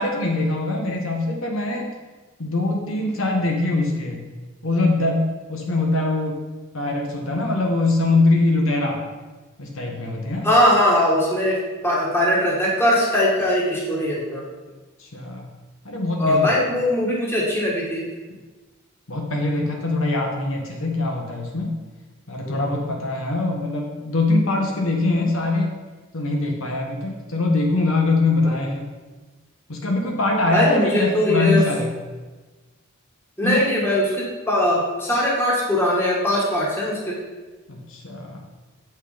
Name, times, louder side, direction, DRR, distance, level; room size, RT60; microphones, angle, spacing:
voice 1, 0.0-1.9 2.4-4.2 4.6-6.4 6.7-9.0 9.6-10.5 15.0-15.5 15.8-16.4 19.1-21.7 22.3-25.7 26.1-28.8 29.7-31.9 33.4-33.6 37.7-38.4, left 2 dB, 70° left, 1 dB, 1.3 m, -23 dB
voice 2, 10.4-14.4 16.2-18.0 22.5-22.7 28.5-28.6 30.5-31.7 33.4-37.2, left 1 dB, 10° left, -4 dB, 1.8 m, -20 dB
8.0 x 6.3 x 5.1 m, 1.3 s
head